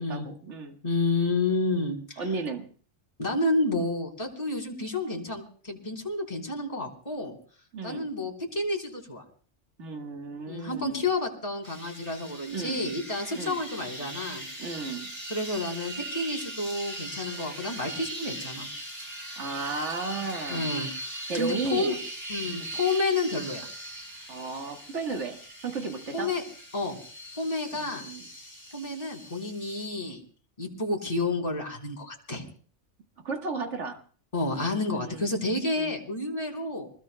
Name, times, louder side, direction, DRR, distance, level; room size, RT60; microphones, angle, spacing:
voice 1, 0.0-0.8 2.2-2.7 7.7-8.0 9.8-11.0 12.5-12.8 13.3-13.6 14.6-15.1 19.4-20.7 21.3-22.0 24.3-26.3 27.7-28.2 33.2-34.0 35.0-35.2 35.8-35.9, right 4 dB, 75° right, 4 dB, 1.9 m, -34 dB
voice 2, 0.8-2.2 3.2-7.4 7.8-9.2 10.5-14.4 15.3-18.7 20.5-20.9 21.3-22.0 22.3-23.7 26.1-26.4 26.7-27.0 27.4-28.0 28.7-30.2 30.6-32.4 34.3-36.9, left 2 dB, 30° left, 0 dB, 3.7 m, -30 dB
sound 1, 11.6-29.9, right 1 dB, 25° right, 3.8 m, -40 dB
27.0 x 20.5 x 2.2 m, 0.43 s
omnidirectional pair, 1.2 m